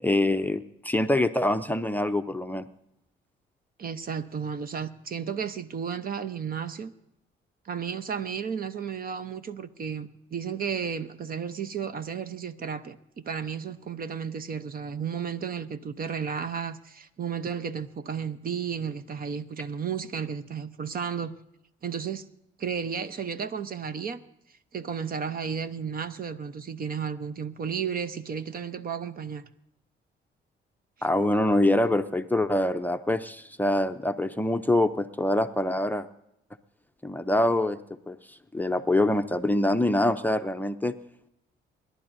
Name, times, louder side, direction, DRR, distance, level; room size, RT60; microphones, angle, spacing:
voice 1, 0.0-2.7 31.0-36.1 37.0-37.8 38.1-40.9, left 1 dB, 10° left, 7 dB, 0.6 m, -25 dB
voice 2, 3.8-6.9 7.6-13.0 13.2-21.3 21.8-22.2 22.6-24.2 24.7-29.4, right 7 dB, 45° right, 12 dB, 0.8 m, -33 dB
27.5 x 11.5 x 2.7 m, 0.83 s
cardioid pair, 90°, 20 cm